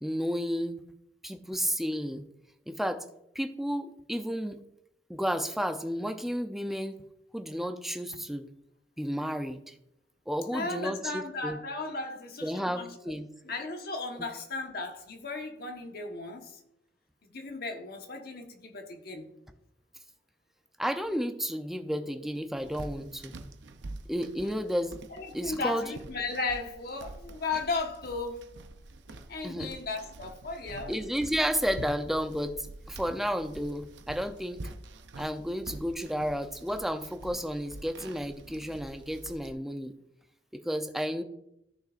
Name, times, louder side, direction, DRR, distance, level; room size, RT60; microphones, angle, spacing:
voice 1, 0.0-0.8 1.2-2.3 2.7-3.0 3.3-4.6 5.1-7.0 7.3-8.5 9.0-9.7 10.3-11.6 12.4-13.3 14.1-14.3 20.8-23.3 24.1-25.0 25.3-25.9 29.4-29.7 30.9-34.6 35.2-39.9 40.5-41.2, equal, ahead, 7 dB, 0.6 m, -32 dB
voice 2, 10.5-13.0 13.4-16.6 17.3-19.3 25.1-28.4 29.1-30.9, left 3 dB, 55° left, 3 dB, 1.3 m, -35 dB
sound 1, 22.6-39.5, right 2 dB, 85° right, 0.7 m, -46 dB
14.0 x 6.6 x 2.5 m, 0.81 s
head